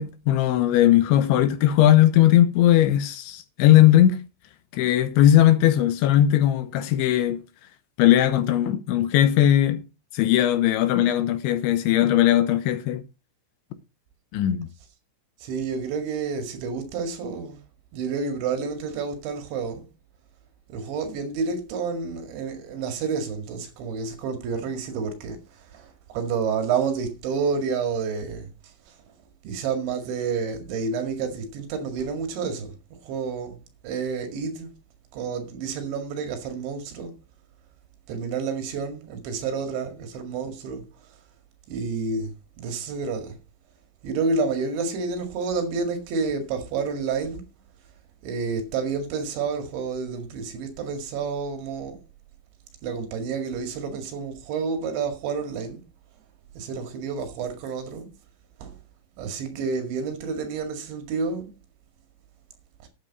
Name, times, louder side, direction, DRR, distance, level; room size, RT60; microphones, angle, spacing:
voice 1, 0.0-4.3 4.7-7.4 8.0-9.8 10.1-13.0 14.3-14.7, left 12 dB, 75° left, 3.2 m, -19 dB
voice 2, 15.4-17.6 17.9-19.9 20.7-28.5 28.9-29.0 29.4-32.7 33.0-34.7 35.1-37.1 38.1-40.8 41.7-43.4 44.0-47.4 48.2-52.0 52.8-55.8 56.6-58.1 58.6-58.8 59.2-61.5, right 5 dB, 70° right, 4.3 m, -29 dB
12.0 x 9.1 x 4.1 m
omnidirectional pair, 5.6 m